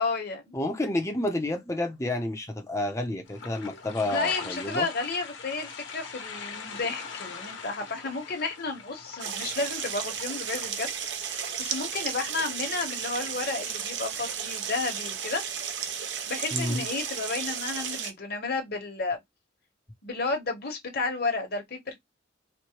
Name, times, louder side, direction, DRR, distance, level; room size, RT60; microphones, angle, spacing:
voice 1, 0.0-0.6 4.0-15.4 16.3-19.2 20.0-22.0, left 3 dB, 55° left, 1.2 m, -32 dB
voice 2, 0.5-4.9 16.5-16.9, left 1 dB, 15° left, 0.7 m, -30 dB
sound 1, 3.2-10.7, left 5 dB, 75° left, 1.2 m, -42 dB
sound 2, 9.2-18.1, right 7 dB, 65° right, 0.7 m, -34 dB
4.4 x 2.2 x 2.9 m
head